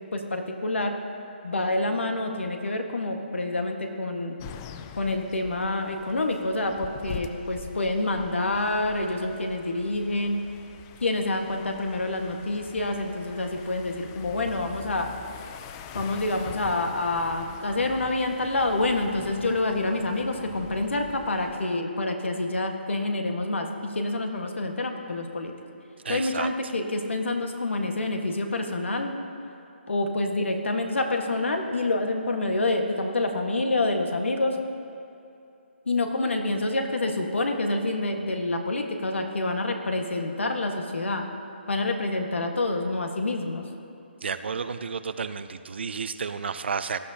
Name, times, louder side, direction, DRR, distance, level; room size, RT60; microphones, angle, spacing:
voice 1, 0.1-1.0 1.4-4.4 5.0-10.4 11.0-15.1 15.9-25.5 26.1-29.1 29.9-34.6 35.8-41.2 41.7-43.6, left 2 dB, 85° left, 4 dB, 1.5 m, -27 dB
sound 1, 4.4-21.6, left 8 dB, 20° left, 0.3 m, -44 dB
voice 2, 26.0-26.5 44.2-47.0, right 5 dB, 65° right, 11 dB, 0.6 m, -31 dB
18.5 x 11.5 x 2.8 m, 2.7 s
hypercardioid pair, 160°, 6 cm